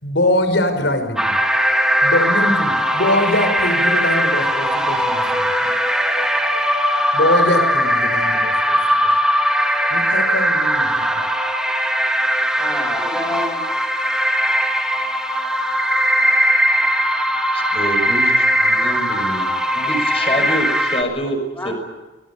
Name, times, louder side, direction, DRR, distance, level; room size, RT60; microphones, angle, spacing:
voice 1, 0.0-1.3 2.0-5.7 7.1-8.8 9.0-9.2 9.9-11.2, left 1 dB, 85° left, 8 dB, 5.5 m, -22 dB
sound 1, 1.2-21.0, equal, 5° right, 2.9 m, -19 dB
voice 2, 12.5-13.6 17.5-17.7 20.3-20.6 21.5-21.7, left 1 dB, 15° left, 4 dB, 7.0 m, -29 dB
voice 3, 17.5-21.4 21.6-21.7, equal, 35° left, 6 dB, 6.1 m, -26 dB
26.0 x 21.0 x 8.7 m, 1.1 s
head